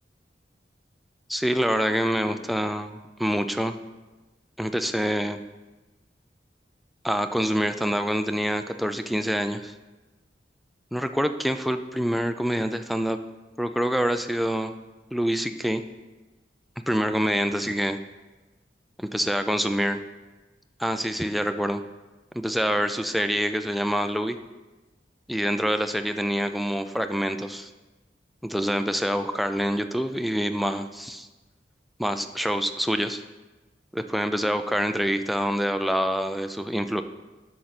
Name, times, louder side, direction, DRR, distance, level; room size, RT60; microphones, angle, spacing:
voice 1, 1.3-3.7 4.6-5.4 7.0-9.7 10.9-13.2 13.6-14.7 15.1-15.8 16.9-18.0 19.0-20.0 20.8-21.8 22.3-24.4 25.3-27.7 28.4-31.3 32.0-33.2 33.9-37.0, equal, ahead, 8 dB, 0.3 m, -26 dB
10.0 x 6.4 x 4.1 m, 1.2 s
head